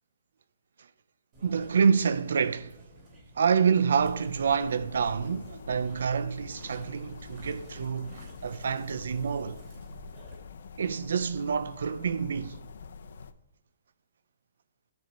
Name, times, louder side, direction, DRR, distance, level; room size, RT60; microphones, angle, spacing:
sound 1, 1.3-10.4, right 1 dB, 30° right, 2.7 m, -52 dB
voice 1, 1.4-2.8 3.3-9.6 10.8-12.6, right 6 dB, 85° right, 0.4 m, -27 dB
sound 2, 4.0-13.3, left 5 dB, 80° left, 0.6 m, -46 dB
11.0 x 4.3 x 5.1 m
hypercardioid pair, 175°, 0 cm